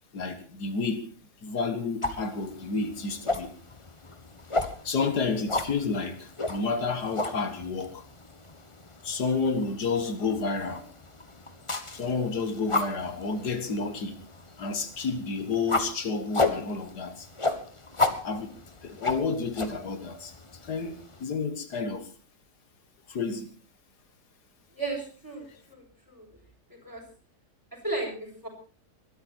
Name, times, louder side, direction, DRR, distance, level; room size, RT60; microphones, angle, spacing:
voice 1, 0.1-1.1 1.4-3.5 4.8-8.0 9.0-10.9 11.9-14.2 14.6-17.3 18.2-18.5 18.8-20.3 20.6-22.1 23.1-23.5, left 4 dB, 85° left, 2.2 m, -30 dB
sound 1, 2.0-21.2, left 2 dB, 20° left, 1.5 m, -34 dB
voice 2, 24.7-26.3 26.7-27.0 27.7-28.5, right 2 dB, 10° right, 7.4 m, -35 dB
22.5 x 13.5 x 4.5 m
omnidirectional pair, 1.7 m